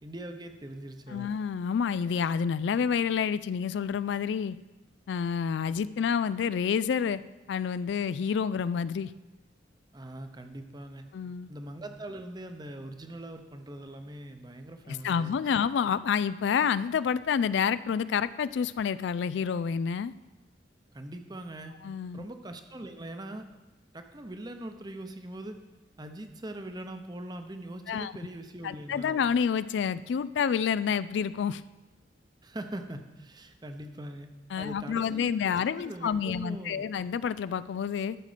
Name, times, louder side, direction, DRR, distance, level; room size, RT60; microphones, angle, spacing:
voice 1, 0.0-1.3 9.9-11.1 11.5-15.4 20.9-21.8 22.1-23.5 23.9-25.6 26.0-29.2 32.4-34.3 34.6-35.3 35.8-36.9, right 1 dB, 20° right, 6 dB, 0.8 m, -41 dB
voice 2, 1.1-4.6 5.1-7.2 7.5-9.1 11.1-11.5 14.9-20.1 21.8-22.2 27.9-28.1 28.6-31.6 34.5-38.2, left 7 dB, 70° left, 16 dB, 0.3 m, -28 dB
12.0 x 6.6 x 5.0 m, 1.1 s
head